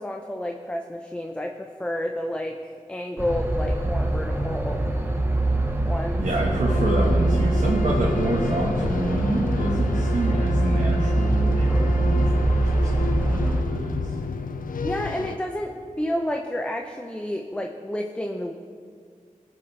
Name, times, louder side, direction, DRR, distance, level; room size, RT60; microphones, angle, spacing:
voice 1, 0.0-4.8 5.9-6.2 14.8-18.5, left 1 dB, 10° left, 3 dB, 0.7 m, -30 dB
sound 1, 3.2-13.6, right 2 dB, 15° right, 1.2 m, -23 dB
voice 2, 6.2-12.3 12.7-14.1, right 1 dB, 70° right, -4 dB, 1.5 m, -27 dB
sound 2, 6.7-15.4, left 5 dB, 85° left, 0.5 m, -31 dB
20.0 x 7.7 x 3.4 m, 2.1 s
wide cardioid pair, 60°, 14 cm